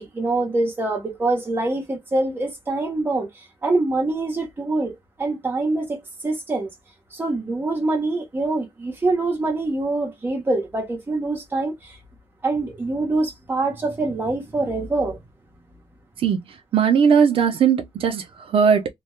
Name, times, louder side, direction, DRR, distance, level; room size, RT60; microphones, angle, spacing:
voice 1, 0.0-3.3 3.6-6.7 7.1-12.0 12.4-15.2, right 2 dB, 20° right, 0.8 m, -24 dB
voice 2, 16.7-18.9, right 7 dB, 65° right, 0.5 m, -18 dB
2.2 x 2.1 x 2.9 m
wide cardioid pair, 170°, 10 cm